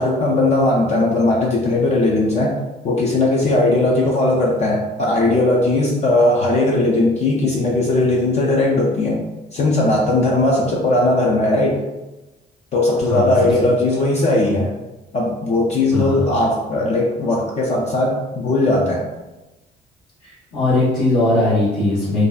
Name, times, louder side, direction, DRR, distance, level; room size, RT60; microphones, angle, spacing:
voice 1, 0.0-2.5 2.8-11.8 12.7-14.7 15.1-19.1, left 2 dB, 40° left, -3 dB, 0.4 m, -18 dB
voice 2, 20.5-22.3, left 2 dB, 70° left, -9 dB, 0.9 m, -18 dB
2.6 x 2.2 x 2.3 m, 1.1 s
cardioid pair, 110°, 17 cm